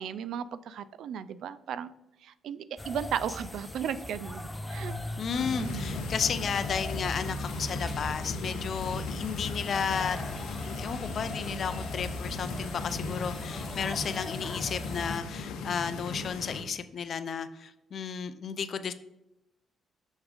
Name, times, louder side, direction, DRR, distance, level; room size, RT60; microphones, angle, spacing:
voice 1, 0.0-1.9 2.2-5.0 5.6-6.1, right 8 dB, 75° right, 15 dB, 0.3 m, -35 dB
sound 1, 2.8-15.2, left 1 dB, 15° left, 0.7 m, -39 dB
voice 2, 5.2-10.2 10.6-18.9, left 6 dB, 55° left, 12 dB, 0.5 m, -33 dB
sound 2, 5.3-16.6, left 3 dB, 90° left, 0.7 m, -38 dB
6.4 x 3.6 x 4.9 m, 0.90 s
cardioid pair, 90°, 0 cm